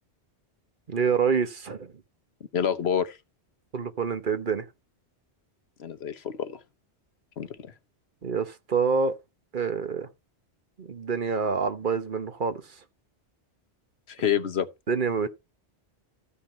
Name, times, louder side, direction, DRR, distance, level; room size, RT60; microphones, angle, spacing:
voice 1, 0.9-1.9 3.7-4.6 8.2-9.1 9.5-10.1 10.8-12.6 14.9-15.3, right 5 dB, 50° right, 1.1 m, -27 dB
voice 2, 2.5-3.2 5.8-6.6 7.4-7.7 14.1-14.7, left 8 dB, 70° left, 1.2 m, -28 dB
14.0 x 5.6 x 4.3 m
omnidirectional pair, 1.1 m